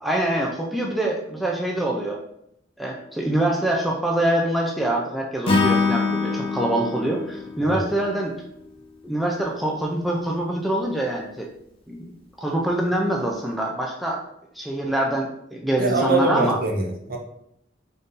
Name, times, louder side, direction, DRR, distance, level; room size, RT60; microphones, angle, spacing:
voice 1, 0.0-2.2 2.8-8.3 9.0-11.5 11.9-12.1 12.4-14.2 14.6-16.6, right 1 dB, ahead, -2 dB, 0.4 m, -25 dB
Acoustic guitar / Strum, 5.5-8.7, left 4 dB, 30° left, 0.8 m, -24 dB
voice 2, 15.8-17.2, right 2 dB, 50° right, 1 dB, 0.7 m, -23 dB
4.0 x 2.6 x 3.7 m, 0.75 s
head